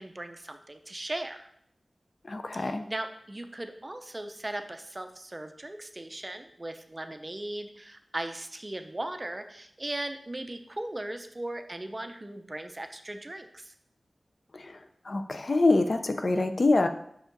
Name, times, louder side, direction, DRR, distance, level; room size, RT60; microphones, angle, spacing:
voice 1, 0.0-1.4 2.5-13.7, right 1 dB, 25° right, 7 dB, 0.6 m, -38 dB
voice 2, 2.2-2.8 14.5-14.8 15.1-16.9, left 2 dB, 50° left, 8 dB, 0.5 m, -25 dB
6.3 x 5.0 x 3.9 m, 0.70 s
wide cardioid pair, 75°, 0 cm